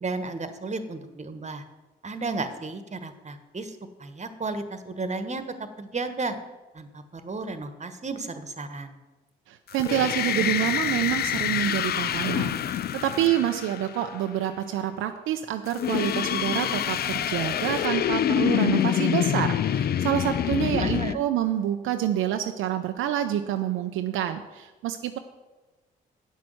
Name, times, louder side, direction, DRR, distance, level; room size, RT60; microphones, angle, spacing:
voice 1, 0.0-1.6 2.0-5.4 5.8-6.3 6.7-8.9 20.7-21.2, right 3 dB, 35° right, 10 dB, 1.3 m, -33 dB
voice 2, 9.5-25.2, right 11 dB, 75° right, 7 dB, 0.6 m, -27 dB
sound 1, 9.7-14.2 15.7-21.1, left 10 dB, 50° left, 0.4 m, -26 dB
8.2 x 6.3 x 7.7 m, 1.2 s
hypercardioid pair, 45°, 21 cm